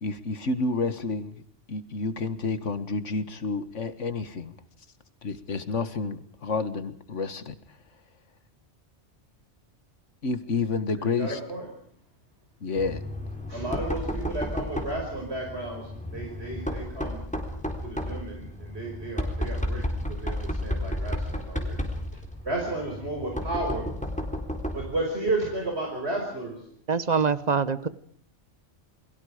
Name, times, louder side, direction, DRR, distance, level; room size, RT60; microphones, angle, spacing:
voice 1, 0.0-1.3 1.7-4.5 5.2-7.6 10.2-11.4 12.6-13.0, left 4 dB, 90° left, 12 dB, 2.0 m, -29 dB
voice 2, 11.0-11.7 13.5-17.2 17.8-21.8 22.4-23.9 24.7-26.6, right 2 dB, 60° right, 0 dB, 5.5 m, -33 dB
Knock, 12.8-25.0, left 1 dB, 5° left, 3.9 m, -32 dB
voice 3, 26.9-27.9, right 5 dB, 35° right, 14 dB, 1.3 m, -24 dB
29.0 x 22.0 x 5.0 m, 0.62 s
omnidirectional pair, 1.2 m